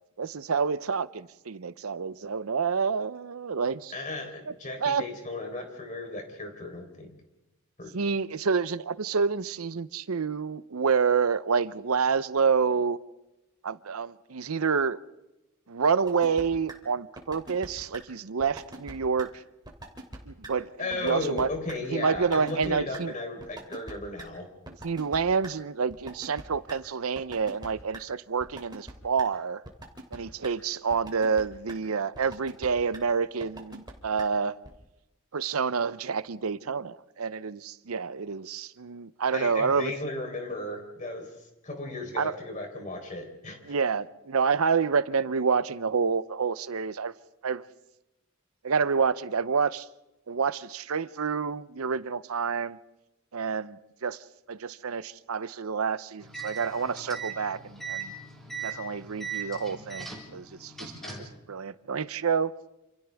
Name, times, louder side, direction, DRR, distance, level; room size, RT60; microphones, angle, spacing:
voice 1, 0.2-3.9 4.8-5.0 7.9-13.0 13.6-15.0 15.7-19.3 20.3-20.7 21.0-21.5 21.9-23.1 24.8-29.6 30.1-34.6 35.3-39.9 42.2-42.3 43.7-47.1 47.4-47.7 48.6-49.9 50.3-52.8 53.3-58.1 58.6-60.9 61.5-62.5, right 5 dB, 90° right, 0.7 m, -28 dB
voice 2, 3.9-7.1 7.8-7.9 20.8-24.5 39.3-41.3 41.6-43.7 61.0-61.4, left 2 dB, 35° left, 4.0 m, -35 dB
sound 1, 16.1-16.4 16.7-16.8 17.2-17.7 17.9-18.0 18.4-18.9 19.2-19.3 19.6-20.2 20.4-20.5 20.9-21.4 21.7-21.8 22.1-22.7 22.9-23.0 23.4-23.9 24.2-24.3 24.7-25.5 25.9-26.7 27.2-27.7 27.9-28.0 28.4-28.9 29.2-29.3 29.6-30.2 30.4-30.5 30.9-31.4 31.7-31.8 32.1-32.7 32.9-33.0 33.4-33.9 34.2-34.3 34.6-34.7, right 2 dB, 20° right, 3.0 m, -41 dB
sound 2, 56.2-61.4, right 5 dB, ahead, 4.5 m, -39 dB
28.0 x 28.0 x 3.5 m
head